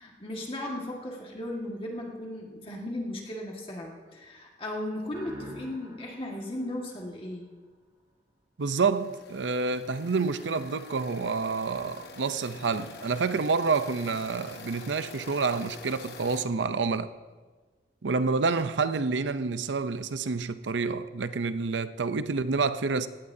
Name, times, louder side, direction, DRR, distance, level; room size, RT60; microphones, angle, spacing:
voice 1, 0.0-7.5, left 1 dB, 30° left, 1.8 m, -36 dB
sound 1, 5.1-7.8, right 2 dB, 25° right, 2.3 m, -48 dB
sound 2, 8.6-16.5, left 4 dB, 60° left, 1.2 m, -46 dB
voice 2, 8.6-17.1 18.0-23.1, right 4 dB, 85° right, 0.6 m, -28 dB
18.0 x 16.5 x 2.8 m
head